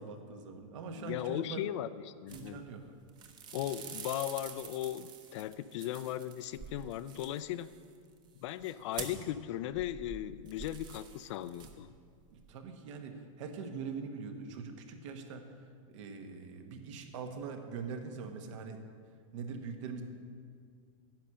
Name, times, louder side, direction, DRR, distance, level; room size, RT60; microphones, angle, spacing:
voice 1, 0.0-1.7 2.3-2.9 12.3-15.5 15.9-18.8 19.3-20.0, right 5 dB, 65° right, 5 dB, 1.4 m, -42 dB
voice 2, 1.0-2.7 3.5-7.8 8.4-11.9, left 12 dB, 60° left, 15 dB, 0.5 m, -37 dB
sound 1, 2.3-2.8 3.1-9.4 9.7-12.0 12.2-12.5, right 6 dB, 25° right, 1.0 m, -47 dB
10.5 x 6.4 x 8.6 m, 2.1 s
supercardioid pair, 155°, 17 cm